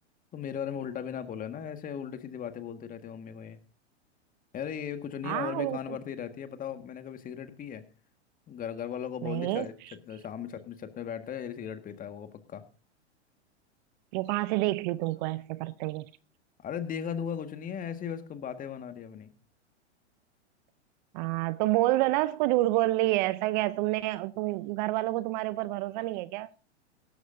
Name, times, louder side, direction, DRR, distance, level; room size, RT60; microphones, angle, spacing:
voice 1, 0.3-3.6 4.5-7.8 8.5-9.7 10.1-12.6 16.6-19.3, left 8 dB, 25° left, 1.7 m, -37 dB
voice 2, 5.2-5.8 9.2-9.7 14.1-16.1 21.1-26.5, right 18 dB, 40° right, 0.6 m, -28 dB
17.0 x 13.5 x 2.7 m
hypercardioid pair, 115°, 35 cm